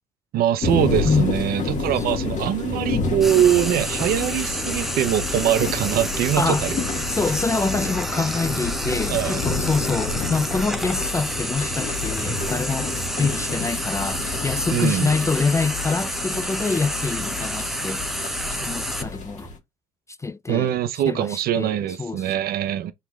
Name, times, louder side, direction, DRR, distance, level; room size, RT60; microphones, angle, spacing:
voice 1, 0.3-6.8 9.1-9.4 14.7-15.1 20.5-22.9, right 11 dB, 60° right, 0.6 m, -22 dB
sound 1, 0.6-19.6, left 3 dB, 45° left, 1.3 m, -29 dB
Frying (food), 3.2-19.0, equal, ahead, 0.8 m, -30 dB
voice 2, 7.1-12.9 13.2-19.5 20.2-20.7 21.1-22.3, left 4 dB, 15° left, 0.3 m, -26 dB
6.7 x 2.9 x 2.2 m
hypercardioid pair, 55°, 18 cm